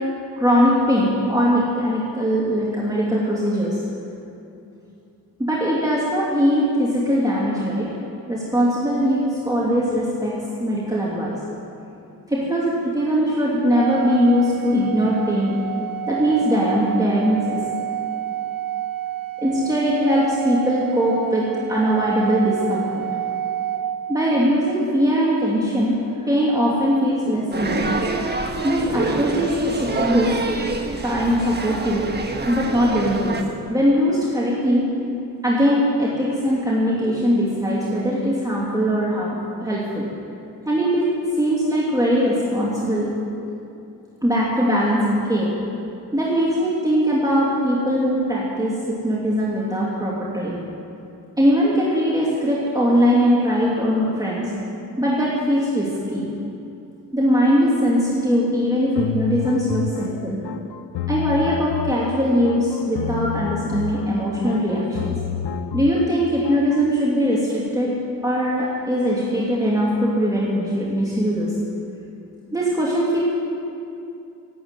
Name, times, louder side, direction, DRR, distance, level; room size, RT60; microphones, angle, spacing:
voice 1, 0.4-3.8 5.4-7.9 8.3-10.3 10.6-11.3 12.3-15.6 16.1-17.6 19.4-23.0 24.1-26.0 26.3-28.0 28.6-30.3 31.0-32.1 32.4-33.4 33.7-34.8 35.4-40.1 40.7-41.1 41.4-43.1 44.2-45.5 46.1-50.6 51.4-54.5 55.0-56.3 57.1-60.3 61.1-65.1 65.7-67.9 68.2-71.5 72.5-73.2, equal, 10° right, -6 dB, 2.8 m, -21 dB
Organ, 13.7-24.6, right 12 dB, 60° right, 0.8 m, -29 dB
sound 1, 27.5-33.4, right 3 dB, 25° right, 1.4 m, -26 dB
sound 2, 58.9-66.9, left 8 dB, 90° left, 0.8 m, -30 dB
17.5 x 8.7 x 9.2 m, 2.7 s
cardioid pair, 110°, 39 cm